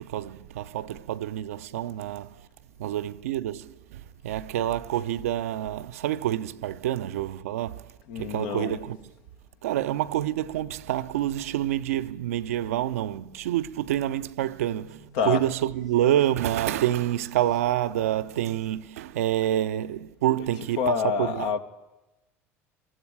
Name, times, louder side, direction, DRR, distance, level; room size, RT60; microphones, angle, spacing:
voice 1, 0.0-2.5 2.8-9.1 9.6-21.5, right 12 dB, 75° right, 0.5 m, -28 dB
voice 2, 8.1-8.8 15.1-15.4 20.5-21.6, left 6 dB, 65° left, 1.2 m, -28 dB
sound 1, 10.0-18.7, left 2 dB, 85° left, 4.0 m, -54 dB
20.0 x 14.0 x 4.7 m
hypercardioid pair, 70°, 8 cm